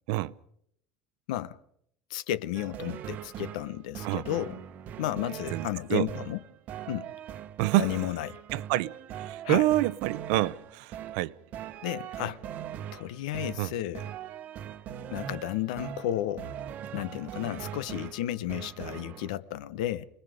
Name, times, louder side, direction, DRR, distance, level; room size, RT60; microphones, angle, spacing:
voice 1, 2.1-4.6 5.0-6.4 6.9-7.1 7.8-8.4 9.4-9.7 11.8-12.4 12.9-14.1 15.1-16.5 16.9-20.0, left 13 dB, 85° left, 1.0 m, -33 dB
sound 1, 2.5-19.3, right 10 dB, 45° right, 1.1 m, -41 dB
voice 2, 5.5-6.1 7.6-7.9 8.5-8.9 9.3-11.3 13.6-13.7, right 18 dB, 70° right, 0.8 m, -27 dB
29.0 x 20.5 x 5.1 m
supercardioid pair, 135°, 4 cm